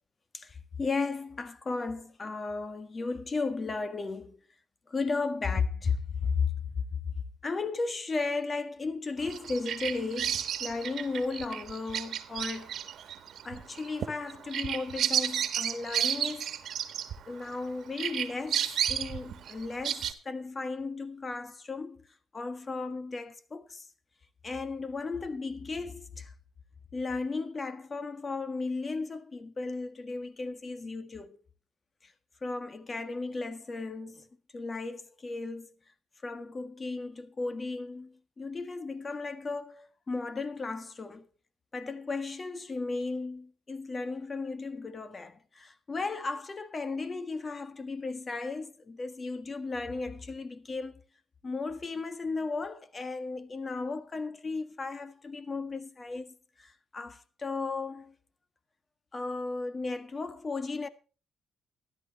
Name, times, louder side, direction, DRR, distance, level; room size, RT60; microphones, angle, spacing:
voice 1, 0.3-4.4 4.9-7.0 7.4-12.7 13.4-16.6 17.3-22.1 22.3-23.9 24.4-26.3 26.9-31.4 32.0-32.1 32.4-35.7 36.2-41.3 41.7-51.0 51.4-58.1 59.1-60.9, left 4 dB, 30° left, 1.6 m, -35 dB
Bird vocalization bird call bird song, 9.2-17.6 18.0-20.1, right 9 dB, 65° right, 1.5 m, -32 dB
13.5 x 11.5 x 4.2 m
cardioid pair, 90°, 0 cm